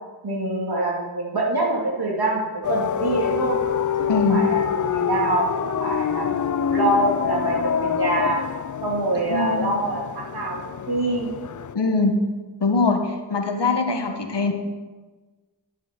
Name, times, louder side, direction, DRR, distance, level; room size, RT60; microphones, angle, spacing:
voice 1, 0.2-3.6 4.0-6.4 6.7-8.4 8.8-11.3, right 2 dB, 60° right, -2 dB, 2.9 m, -25 dB
sound 1, 2.6-11.7, left 8 dB, 45° left, 0.5 m, -26 dB
voice 2, 4.1-4.4 9.1-9.7 11.7-12.2 12.6-14.5, left 3 dB, 75° left, 4 dB, 1.5 m, -22 dB
11.0 x 10.5 x 4.5 m, 1.3 s
wide cardioid pair, 55°, 42 cm